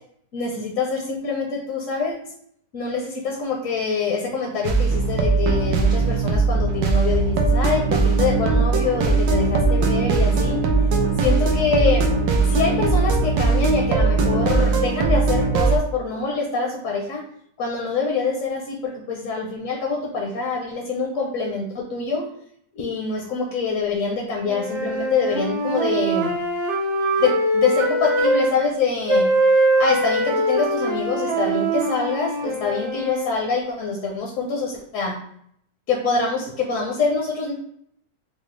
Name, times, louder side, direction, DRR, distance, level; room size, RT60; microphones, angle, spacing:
voice 1, 0.3-2.1 2.7-10.6 11.2-12.1 12.4-17.2 17.6-22.2 22.7-26.3 27.2-29.3 29.8-35.1 35.9-37.5, left 4 dB, 65° left, 0 dB, 0.8 m, -25 dB
sound 1, 4.6-15.8, right 3 dB, 90° right, 1.3 m, -19 dB
sound 2, 24.4-28.6 29.1-33.3, right 1 dB, 65° right, 0.7 m, -22 dB
4.8 x 2.0 x 3.1 m, 0.67 s
omnidirectional pair, 1.9 m